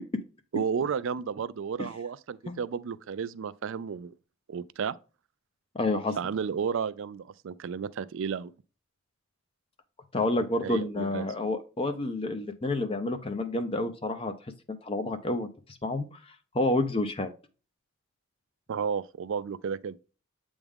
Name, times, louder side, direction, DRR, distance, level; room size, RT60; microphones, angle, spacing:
voice 1, 0.5-4.1 4.5-4.9 6.2-8.5 10.6-11.4 18.7-20.0, right 6 dB, 60° right, 0.4 m, -32 dB
voice 2, 5.7-6.2 10.1-14.3 14.8-15.5 15.8-16.2 16.5-17.3, left 2 dB, 25° left, 0.6 m, -29 dB
8.1 x 3.5 x 3.5 m
head